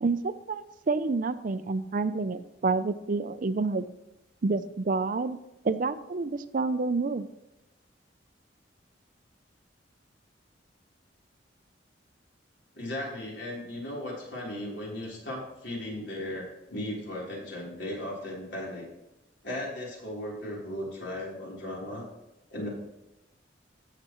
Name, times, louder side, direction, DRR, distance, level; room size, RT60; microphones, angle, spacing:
voice 1, 0.0-3.9 4.4-5.4 5.6-7.3, right 3 dB, 45° right, 12 dB, 0.5 m, -28 dB
voice 2, 12.7-18.9 19.4-22.1 22.5-22.7, left 1 dB, 70° left, -4 dB, 3.6 m, -36 dB
16.0 x 6.8 x 3.0 m, 0.95 s
head